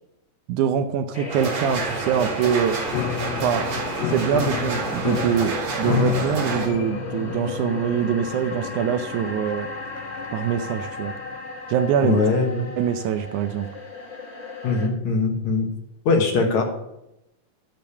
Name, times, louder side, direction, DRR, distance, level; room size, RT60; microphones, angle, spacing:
voice 1, 0.5-2.8 3.4-3.7 4.1-9.7 10.3-11.1 11.7-12.2 12.8-13.7, right 8 dB, 75° right, 9 dB, 2.0 m, -24 dB
sound 1, 1.1-14.9, left 2 dB, 45° left, 0.8 m, -36 dB
sound 2, 1.3-6.7, right 4 dB, 55° right, 2.8 m, -29 dB
Piano, 2.9-11.4, left 13 dB, 85° left, 2.2 m, -31 dB
voice 2, 12.0-12.7 14.6-15.7 16.1-16.6, left 3 dB, 65° left, 2 dB, 2.6 m, -21 dB
12.0 x 5.2 x 7.2 m, 0.86 s
omnidirectional pair, 3.8 m